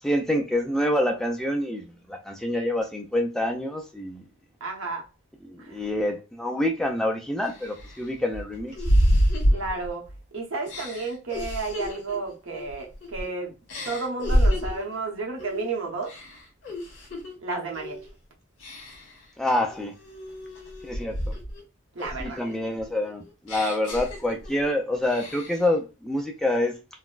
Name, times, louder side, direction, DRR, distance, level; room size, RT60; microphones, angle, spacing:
voice 1, 0.0-4.2 5.5-8.7 19.4-19.9 20.8-21.2 22.2-26.7, left 1 dB, ahead, 0.3 m, -27 dB
voice 2, 4.6-5.1 5.6-5.9 9.5-10.1 10.3-13.5 13.8-16.2 17.4-18.1 21.9-22.4, right 3 dB, 75° right, 0.9 m, -32 dB
sound 1, 6.8-6.9 7.4-10.2 10.7-13.3 13.7-14.9 15.4-15.7 16.0-17.3 17.7-18.1 18.6-19.2 19.7-21.6 22.0-24.7 25.0-25.7, equal, 70° left, 1.4 m, -28 dB
4.0 x 2.1 x 2.4 m
head